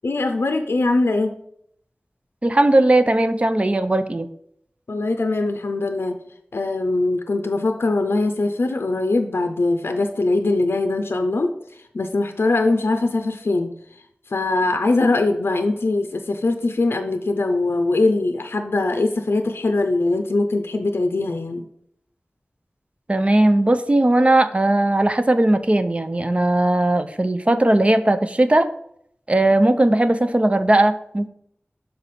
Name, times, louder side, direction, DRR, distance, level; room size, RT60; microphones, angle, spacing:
voice 1, 0.0-1.3 4.9-6.2 6.5-11.5 11.9-13.7 14.3-21.7, left 2 dB, 85° left, 6 dB, 0.5 m, -21 dB
voice 2, 2.4-4.3 23.1-28.7 29.3-31.3, right 1 dB, 30° right, 9 dB, 0.5 m, -18 dB
6.6 x 3.9 x 4.2 m, 0.70 s
wide cardioid pair, 65°, 4 cm